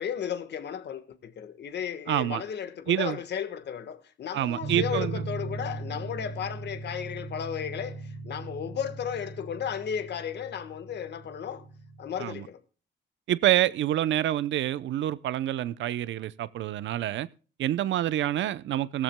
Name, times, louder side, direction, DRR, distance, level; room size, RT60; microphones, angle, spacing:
voice 1, 0.0-11.6 12.0-12.6, left 8 dB, 60° left, 1.5 m, -34 dB
voice 2, 2.1-2.4 2.9-3.2 4.3-5.3 12.2-12.4 13.3-17.3 17.6-19.0, right 12 dB, 70° right, 0.7 m, -27 dB
sound 1, 4.6-12.3, right 2 dB, 90° right, 3.5 m, -39 dB
17.0 x 14.0 x 2.2 m
cardioid pair, 90°, 20 cm